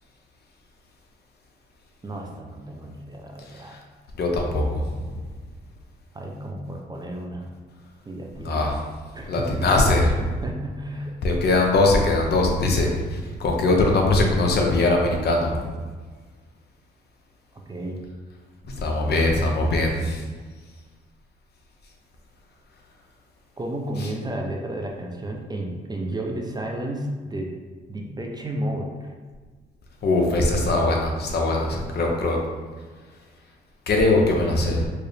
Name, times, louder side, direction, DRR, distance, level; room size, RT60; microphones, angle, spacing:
voice 1, 2.0-3.8 6.1-7.5 8.1-8.6 9.1-9.7 10.2-11.1 17.5-18.0 19.8-20.2 23.6-27.6 27.9-29.1, right 1 dB, 20° right, 0 dB, 0.5 m, -32 dB
voice 2, 4.2-5.1 8.4-8.8 9.3-10.2 11.2-15.7 18.8-20.2 24.0-24.1 30.0-32.4 33.9-34.9, left 2 dB, 55° left, 0 dB, 0.7 m, -21 dB
4.6 x 2.0 x 3.2 m, 1.5 s
cardioid pair, 90°, 20 cm